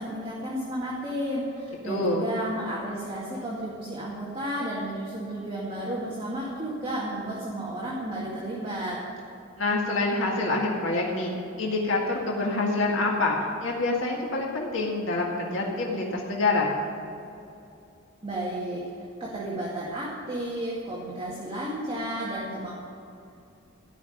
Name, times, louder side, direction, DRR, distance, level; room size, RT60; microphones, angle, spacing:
voice 1, 0.0-9.0 18.2-22.7, right 1 dB, 25° right, -6 dB, 2.1 m, -32 dB
voice 2, 1.9-2.3 9.6-11.3 11.6-16.7, left 2 dB, 70° left, -2 dB, 1.9 m, -26 dB
15.0 x 6.0 x 9.9 m, 2.7 s
head